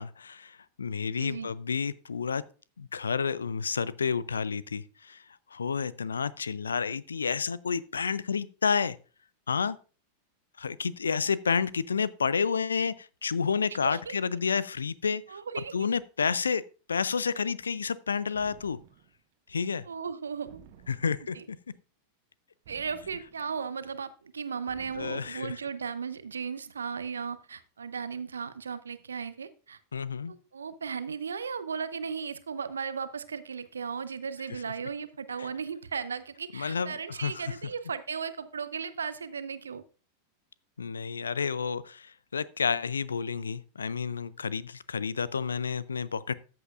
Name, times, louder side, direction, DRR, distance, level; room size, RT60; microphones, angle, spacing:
voice 1, 0.0-2.4 2.8-5.3 5.5-9.0 9.5-9.8 10.6-15.4 15.7-16.6 16.9-18.8 19.5-19.8 20.9-21.6 24.9-25.6 29.9-30.3 35.4-35.5 36.5-37.4 40.8-46.3, left 6 dB, 70° left, 0.4 m, -30 dB
voice 2, 1.2-1.5 13.8-14.2 15.3-15.7 19.8-20.6 21.3-21.4 22.7-29.8 30.3-39.8, right 6 dB, 70° right, 0.7 m, -36 dB
sound 1, 18.3-19.2 20.5-21.4 22.6-23.7 24.7-25.5, right 9 dB, 50° right, 1.0 m, -54 dB
13.5 x 7.7 x 2.5 m
figure-of-eight pair, 90°, 0 cm